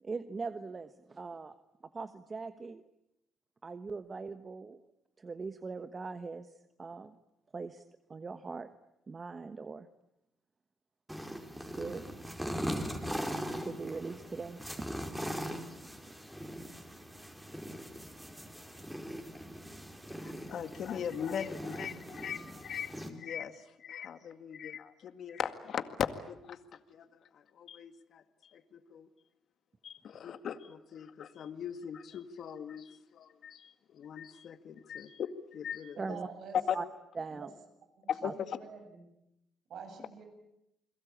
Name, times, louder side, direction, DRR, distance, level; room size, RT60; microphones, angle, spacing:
voice 1, 0.0-1.5 1.9-2.8 3.6-4.8 5.2-6.5 6.8-7.1 7.5-7.8 8.1-8.7 9.1-9.9 11.6-12.0 13.6-15.0 36.0-36.3 36.7-36.8 37.2-37.5 38.2-38.3, right 4 dB, 35° right, 11 dB, 1.2 m, -41 dB
sound 1, 11.1-23.1, equal, 5° right, 4.4 m, -40 dB
voice 2, 20.1-29.1 29.8-36.2 36.5-36.8 38.1-38.6, left 8 dB, 65° left, 10 dB, 2.0 m, -39 dB
voice 3, 36.0-36.6 37.3-37.5 38.3-39.0 39.7-40.2, right 5 dB, 70° right, 6 dB, 7.4 m, -46 dB
30.0 x 22.0 x 8.8 m, 0.84 s
cardioid pair, 90°, 0 cm